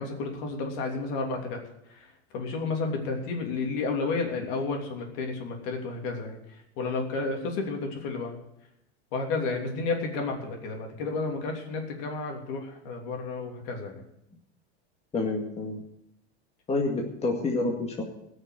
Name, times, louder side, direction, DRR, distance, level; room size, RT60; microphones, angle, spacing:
voice 1, 0.0-1.6 1.9-2.1 2.3-6.4 6.8-8.4 9.1-14.0, left 3 dB, 60° left, 2 dB, 3.2 m, -31 dB
voice 2, 15.1-15.8 16.7-18.0, left 2 dB, 20° left, 0 dB, 2.0 m, -28 dB
17.0 x 6.6 x 8.1 m, 0.82 s
supercardioid pair, 140°, 32 cm